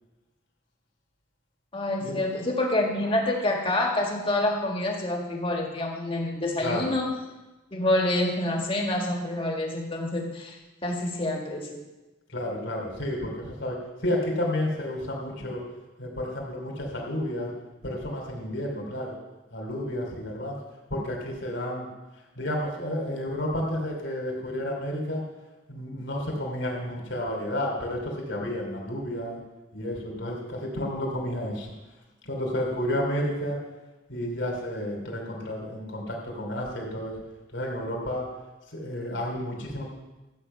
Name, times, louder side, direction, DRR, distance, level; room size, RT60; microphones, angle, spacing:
voice 1, 1.7-7.1 7.7-11.8, left 1 dB, 30° left, 1 dB, 1.8 m, -27 dB
voice 2, 6.6-6.9 12.3-15.6 16.0-17.5 17.8-19.2 19.5-20.6 20.9-21.9 22.4-25.2 25.7-29.4 29.7-31.7 32.2-33.6 34.1-37.2 37.5-38.3 38.7-39.8, left 1 dB, 65° left, 0 dB, 2.9 m, -31 dB
13.5 x 8.6 x 5.6 m, 1.1 s
head